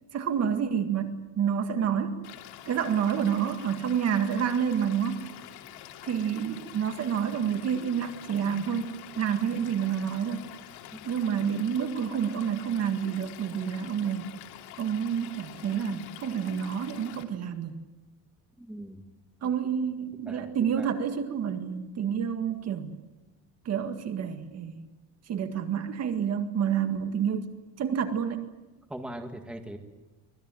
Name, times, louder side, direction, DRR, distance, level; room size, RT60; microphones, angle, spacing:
voice 1, 0.1-2.2 2.7-5.3 6.0-10.4 11.0-14.3 14.8-17.8 19.4-23.0 23.7-24.8 25.3-27.5 27.8-28.4, right 8 dB, 40° right, 7 dB, 1.9 m, -29 dB
Stream / Liquid, 2.2-17.2, left 12 dB, 85° left, 2.8 m, -46 dB
voice 2, 18.6-19.0 20.3-20.9 28.9-29.8, right 1 dB, ahead, 4 dB, 1.9 m, -41 dB
25.0 x 19.5 x 9.2 m, 1.1 s
cardioid pair, 155°, 39 cm